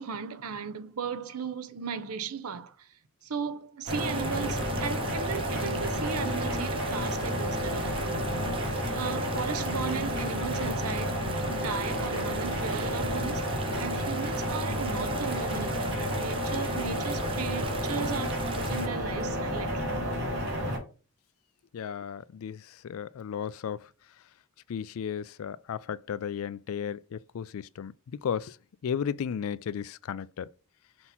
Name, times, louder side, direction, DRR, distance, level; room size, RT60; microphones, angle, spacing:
voice 1, 0.0-2.9 3.2-8.3 8.8-11.2 11.5-19.8, right 6 dB, 75° right, 0.6 m, -36 dB
sound 1, 3.8-18.9, right 4 dB, 25° right, 0.6 m, -41 dB
sound 2, 3.9-20.8, equal, 55° right, 2.5 m, -31 dB
voice 2, 21.7-23.9 24.7-28.6 28.8-30.5, left 7 dB, 65° left, 0.3 m, -34 dB
6.0 x 2.9 x 5.5 m
head